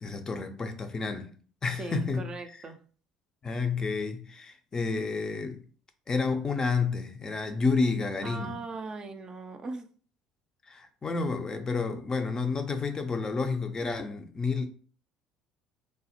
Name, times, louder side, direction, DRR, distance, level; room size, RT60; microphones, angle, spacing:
voice 1, 0.0-1.3 1.6-2.3 3.4-5.6 6.1-8.6 10.7-14.7, left 4 dB, 30° left, 0.5 m, -30 dB
voice 2, 1.8-2.8 8.2-9.9, right 3 dB, 35° right, 0.4 m, -39 dB
3.2 x 2.0 x 2.8 m
figure-of-eight pair, 60°, 2 cm